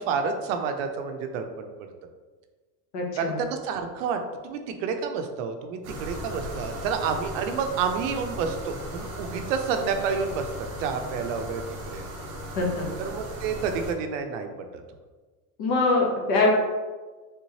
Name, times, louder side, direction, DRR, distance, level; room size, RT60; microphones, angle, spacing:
voice 1, 0.0-1.7 3.2-10.5 10.8-12.1 13.0-14.8, right 5 dB, 90° right, 6 dB, 0.6 m, -29 dB
voice 2, 2.9-3.4 12.6-12.9 15.6-16.5, left 2 dB, 45° left, 0 dB, 0.7 m, -23 dB
sound 1, 5.8-13.9, equal, 35° right, 0.7 m, -37 dB
3.5 x 3.0 x 2.7 m, 1.3 s
cardioid pair, 175°, 37 cm